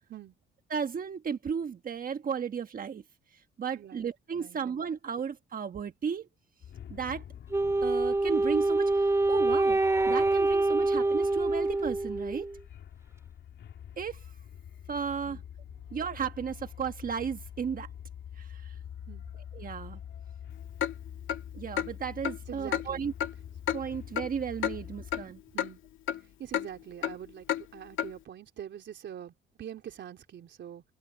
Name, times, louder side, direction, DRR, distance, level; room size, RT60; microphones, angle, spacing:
voice 1, 0.7-3.0 3.3-6.3 6.9-7.2 7.8-9.8 10.0-12.5 14.0-14.3 14.9-15.4 15.9-17.9 18.4-18.8 19.5-20.0 21.5-23.1 23.7-25.4, right 7 dB, 45° right, 1.3 m, -34 dB
voice 2, 3.7-4.1 4.3-4.6 10.8-10.9 15.3-15.4 19.1-19.3 22.5-23.1 25.5-25.8 26.4-30.8, right 10 dB, 65° right, 3.7 m, -44 dB
sound 1, 6.6-25.2, left 9 dB, 65° left, 3.1 m, -46 dB
Wind instrument woodwind instrument, 7.5-12.6, right 2 dB, 15° right, 1.9 m, -26 dB
Clock, 20.8-20.9 21.3-21.4 21.8-21.9 22.2-22.4 22.7-22.8 23.2-23.3 23.7-23.8 24.2-24.3 24.6-24.8 25.1-25.2 25.6-25.7 26.1-26.2 26.5-26.7 27.0-27.1 27.5-27.6 28.0-28.1, left 10 dB, 85° left, 2.1 m, -30 dB
open air
cardioid pair, 90°, 20 cm